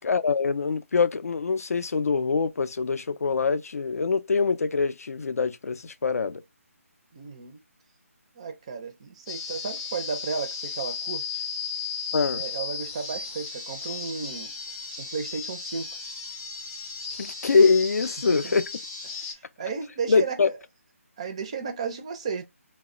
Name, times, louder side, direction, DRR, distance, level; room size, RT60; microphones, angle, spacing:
voice 1, 0.0-6.4 12.1-12.4 17.2-18.6 20.1-20.5, left 4 dB, 75° left, 0.4 m, -24 dB
voice 2, 7.1-7.6 8.3-11.4 12.3-14.5 15.0-16.0 18.3-18.5 19.1-20.6 21.2-22.4, right 5 dB, 25° right, 0.4 m, -34 dB
sound 1, 9.3-19.3, left 5 dB, 20° left, 0.6 m, -35 dB
2.1 x 2.0 x 3.6 m
hypercardioid pair, 165°, 8 cm